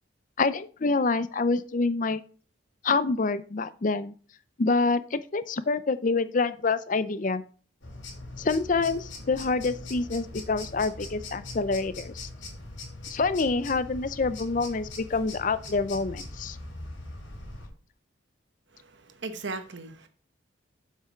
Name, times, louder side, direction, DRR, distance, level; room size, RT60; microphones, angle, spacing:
voice 1, 0.4-2.2 2.8-4.1 4.6-7.4 8.4-12.3 13.1-16.6, left 3 dB, 40° left, 0.5 m, -27 dB
sound 1, 7.8-17.7, left 2 dB, 70° left, 3.5 m, -41 dB
voice 2, 18.7-20.1, right 3 dB, 65° right, 1.0 m, -38 dB
7.6 x 5.7 x 5.0 m
head